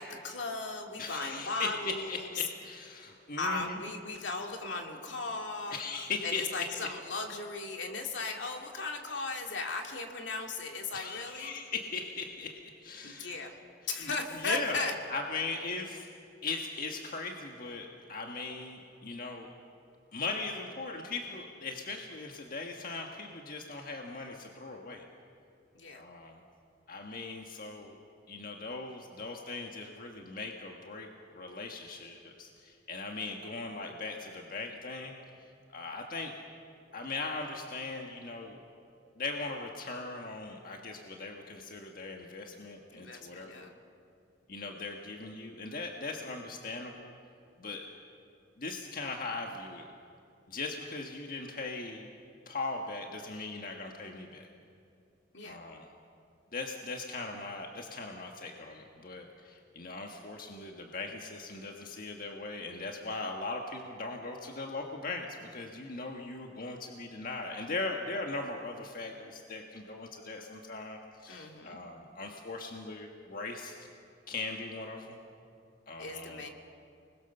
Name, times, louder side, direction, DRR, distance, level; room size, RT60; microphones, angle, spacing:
voice 1, 0.0-2.3 3.4-5.8 6.2-11.5 13.0-13.6 13.9-14.9 25.7-26.0 42.9-43.7 55.3-55.6 71.3-71.8 76.0-76.5, left 3 dB, 75° left, 3 dB, 2.5 m, -37 dB
voice 2, 1.0-3.8 5.7-6.7 10.9-13.4 14.0-14.8 15.1-16.1 16.4-19.5 20.1-25.0 25.9-26.4 26.9-28.0 28.3-35.2 35.7-36.3 36.9-38.6 39.2-43.7 44.5-47.2 47.6-47.9 48.6-49.9 50.5-52.1 52.4-54.5 55.4-55.9 56.5-73.8 74.3-75.2 75.9-76.4, left 3 dB, 50° left, 2 dB, 1.5 m, -39 dB
30.0 x 21.0 x 6.7 m, 2.5 s
head